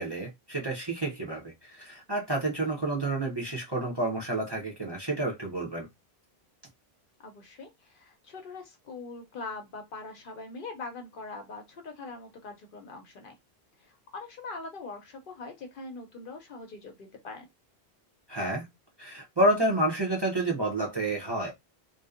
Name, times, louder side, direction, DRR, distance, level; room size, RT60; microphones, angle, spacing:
voice 1, 0.0-5.9 18.3-18.7 19.0-21.5, right 1 dB, 30° right, 0.5 m, -29 dB
voice 2, 7.2-13.3 13.8-17.5, left 3 dB, 60° left, 0.7 m, -42 dB
2.5 x 2.1 x 2.4 m
omnidirectional pair, 1.1 m